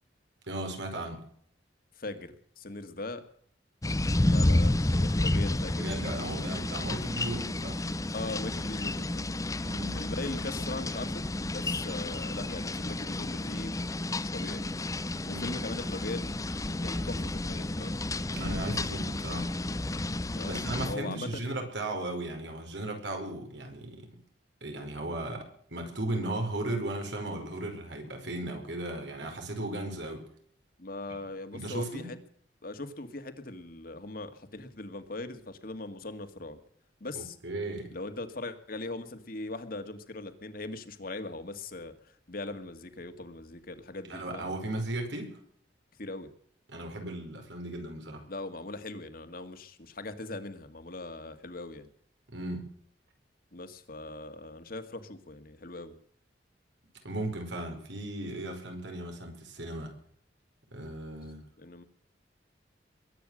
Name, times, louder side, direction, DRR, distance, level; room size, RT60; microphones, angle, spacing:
voice 1, 0.5-1.2 5.8-7.8 9.6-10.0 15.2-15.6 18.3-19.5 20.4-24.2 24.6-30.3 31.5-32.1 37.1-38.0 44.1-45.4 46.7-48.3 52.3-52.7 57.0-59.9 60.7-61.4, right 1 dB, 80° right, 4 dB, 5.1 m, -36 dB
voice 2, 2.0-3.2 4.2-5.8 8.1-9.2 9.9-13.8 14.2-14.6 15.2-16.4 16.8-18.0 20.3-21.4 30.8-32.2 32.6-36.6 37.0-37.4 37.9-44.5 46.0-46.3 48.3-51.9 53.5-55.9 61.6-61.8, left 2 dB, 55° left, 8 dB, 2.0 m, -40 dB
sound 1, 3.8-21.0, left 1 dB, 20° left, 0.7 m, -31 dB
22.0 x 9.5 x 6.3 m, 0.62 s
head